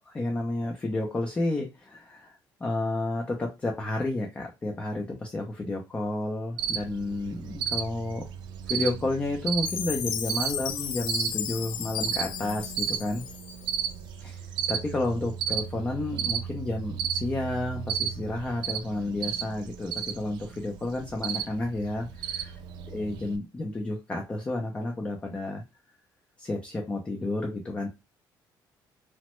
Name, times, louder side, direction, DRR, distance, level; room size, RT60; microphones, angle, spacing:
voice 1, 0.1-2.3 2.6-8.2 8.7-13.2 14.2-22.5 22.9-25.6 26.4-27.9, left 2 dB, 15° left, 2 dB, 0.4 m, -31 dB
Cricket, 6.6-23.4, right 8 dB, 70° right, 0.4 m, -34 dB
Chime, 9.7-13.9, left 9 dB, 70° left, 0.4 m, -35 dB
3.0 x 2.1 x 2.9 m, 0.25 s
cardioid pair, 175°, 8 cm